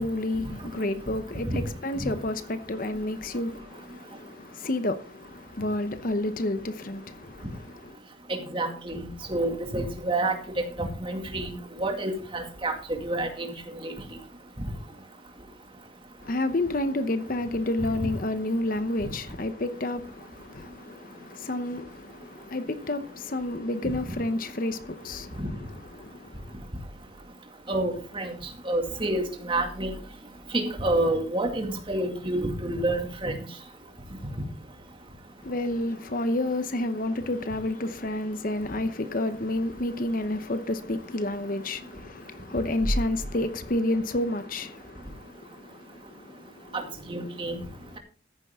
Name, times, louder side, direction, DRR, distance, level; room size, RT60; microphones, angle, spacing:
voice 1, 0.0-7.9 16.2-25.7 25.9-26.6 35.4-46.7 47.7-47.8, left 1 dB, 45° left, 0.8 m, -30 dB
voice 2, 8.3-12.8 13.0-13.5 13.8-13.9 14.6-14.7 25.4-25.5 27.7-28.3 28.6-29.9 30.5-33.3 46.7-47.6, right 1 dB, 25° right, 2.3 m, -28 dB
14.0 x 9.9 x 3.6 m
head